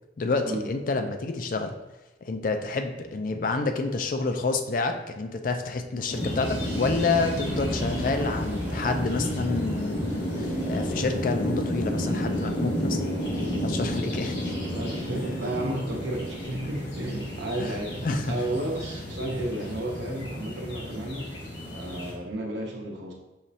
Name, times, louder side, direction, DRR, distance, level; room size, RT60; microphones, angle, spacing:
voice 1, 0.2-1.7 2.2-13.1 13.6-14.5 17.6-17.8 18.0-18.3, left 3 dB, 45° left, 6 dB, 0.4 m, -28 dB
sound 1, 6.1-22.1, equal, 80° left, 1.2 m, -31 dB
sound 2, 6.4-17.1, right 1 dB, 10° right, 0.7 m, -44 dB
voice 2, 14.7-21.3 21.7-23.1, right 1 dB, 85° right, -1 dB, 0.7 m, -32 dB
5.6 x 3.1 x 2.7 m, 1.1 s
head